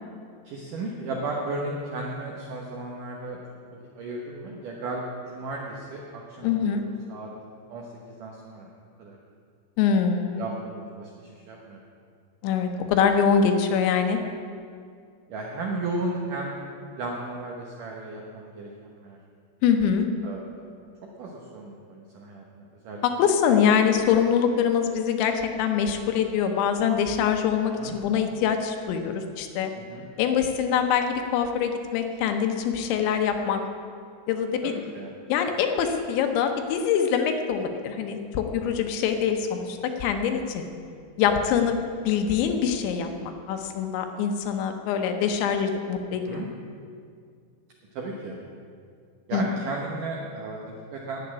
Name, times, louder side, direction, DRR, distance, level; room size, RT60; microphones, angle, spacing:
voice 1, 0.4-3.4 3.9-7.3 7.7-8.7 9.0-9.2 10.4-11.8 15.3-16.6 17.0-19.2 20.2-20.7 21.2-23.0 27.8-28.0 29.8-30.1 34.6-35.1 46.3-46.5 47.9-48.4 49.3-51.2, right 2 dB, 75° right, -1 dB, 1.9 m, -35 dB
voice 2, 6.4-6.8 9.8-10.5 12.4-14.2 19.6-20.1 23.2-29.7 30.2-33.6 34.3-34.7 35.3-40.7 41.2-41.8 42.1-46.4 49.3-49.5, left 7 dB, 80° left, 5 dB, 3.1 m, -24 dB
11.0 x 8.4 x 9.6 m, 2.3 s
omnidirectional pair, 5.5 m